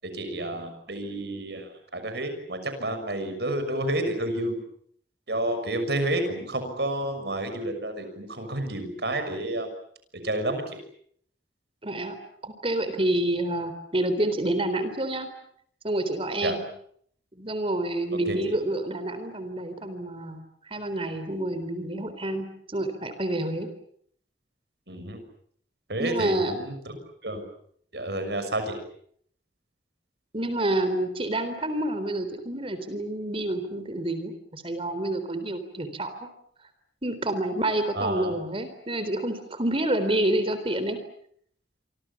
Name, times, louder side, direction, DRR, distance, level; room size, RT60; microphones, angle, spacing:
voice 1, 0.0-4.6 5.3-9.7 10.1-10.8 16.4-16.6 18.1-18.5 24.9-25.2 25.9-27.4 27.9-28.8 37.9-38.3, right 1 dB, 65° right, 8 dB, 6.6 m, -30 dB
voice 2, 11.8-12.2 12.4-15.3 15.8-16.6 17.3-20.4 20.7-23.7 26.0-26.5 30.3-36.3 37.0-41.0, right 1 dB, 30° right, 10 dB, 3.8 m, -28 dB
28.5 x 25.0 x 7.2 m, 0.65 s
head